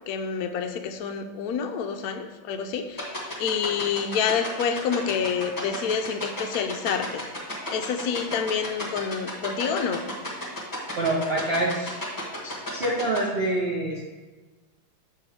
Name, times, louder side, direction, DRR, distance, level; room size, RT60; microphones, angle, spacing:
voice 1, 0.1-7.2 7.7-10.1, left 7 dB, 75° left, 5 dB, 0.8 m, -28 dB
sound 1, 3.0-13.2, left 2 dB, 15° left, 1.0 m, -32 dB
voice 2, 11.0-11.9 12.4-14.0, right 1 dB, 70° right, -3 dB, 0.5 m, -26 dB
7.0 x 3.4 x 4.6 m, 1.3 s
omnidirectional pair, 2.2 m